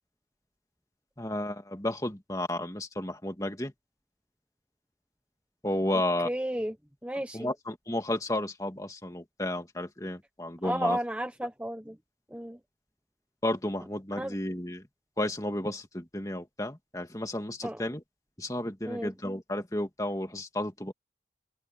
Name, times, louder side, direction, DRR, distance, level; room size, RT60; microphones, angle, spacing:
voice 1, 1.2-3.7 5.6-6.3 7.3-11.0 13.4-14.9 15.2-18.0 18.4-20.9, left 1 dB, 20° left, 2.1 m, -32 dB
voice 2, 6.2-6.8 7.0-7.5 10.6-12.0 12.3-12.6 14.2-14.3 17.6-17.9 18.9-19.1, right 1 dB, 5° right, 0.8 m, -33 dB
open air
head